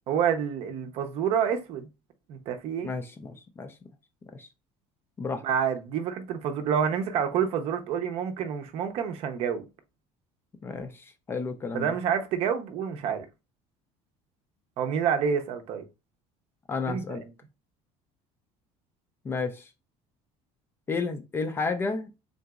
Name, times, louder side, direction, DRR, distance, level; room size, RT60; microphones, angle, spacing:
voice 1, 0.1-1.9 2.3-2.9 5.4-9.6 11.7-13.3 14.8-15.8 16.9-17.2, right 7 dB, 50° right, 0.6 m, -28 dB
voice 2, 2.8-3.8 4.3-4.5 5.2-5.4 10.6-11.9 16.7-17.2 19.2-19.7 20.9-22.1, left 4 dB, 15° left, 0.4 m, -32 dB
3.8 x 3.8 x 2.3 m
cardioid pair, 175°, 13 cm